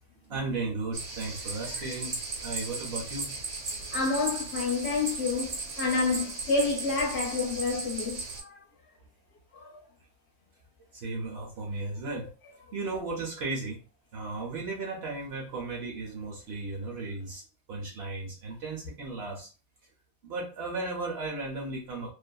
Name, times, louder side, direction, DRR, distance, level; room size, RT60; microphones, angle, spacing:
voice 1, 0.3-3.3 10.9-12.3 12.7-13.8 14.1-17.4 17.7-19.5 20.2-22.1, right 3 dB, 60° right, 0.8 m, -35 dB
sound 1, 0.9-8.4, right 3 dB, 90° right, 1.3 m, -36 dB
voice 2, 3.9-8.6 9.6-9.8, left 4 dB, 60° left, 0.8 m, -29 dB
2.5 x 2.4 x 2.2 m
omnidirectional pair, 1.4 m